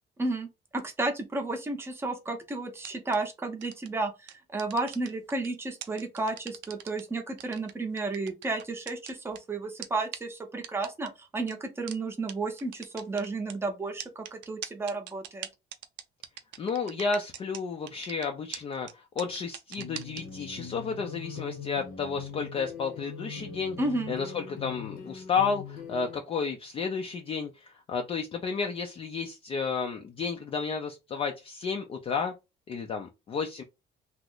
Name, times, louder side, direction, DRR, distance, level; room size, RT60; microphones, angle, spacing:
voice 1, 0.7-15.5 23.8-24.1, right 2 dB, 15° right, 0.6 m, -32 dB
sound 1, 2.8-3.2 3.6-3.9 4.3-5.5 5.8-7.0 7.4-9.4 9.8-9.9 10.1-10.2 10.6-11.1 11.5-11.6 11.9-12.0 12.3-12.4 12.6-13.5 14.0-17.6 17.9-18.3 18.5-18.6 18.9-19.0 19.2-20.2, right 11 dB, 85° right, 0.5 m, -40 dB
voice 2, 16.6-23.8 24.1-32.3 32.7-33.6, left 5 dB, 30° left, 0.4 m, -32 dB
sound 2, 19.8-26.2, left 6 dB, 55° left, 0.8 m, -41 dB
3.0 x 2.0 x 3.7 m
cardioid pair, 160°, 18 cm